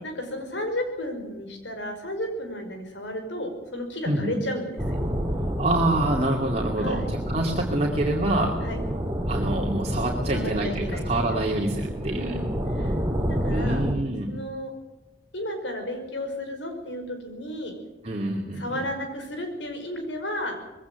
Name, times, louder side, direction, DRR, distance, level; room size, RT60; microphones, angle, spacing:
voice 1, 0.0-5.0 6.8-7.1 8.6-8.8 10.3-11.4 12.1-12.9 13.3-13.9 14.3-14.7 15.3-17.7 18.6-20.6, left 1 dB, 90° left, 5 dB, 5.7 m, -33 dB
voice 2, 4.1-4.4 5.6-8.5 9.3-12.4 13.5-14.4 18.0-18.9, right 1 dB, 35° right, -1 dB, 2.6 m, -26 dB
sound 1, 4.8-13.9, equal, 15° right, 3.0 m, -29 dB
21.5 x 17.0 x 9.3 m, 1.1 s
head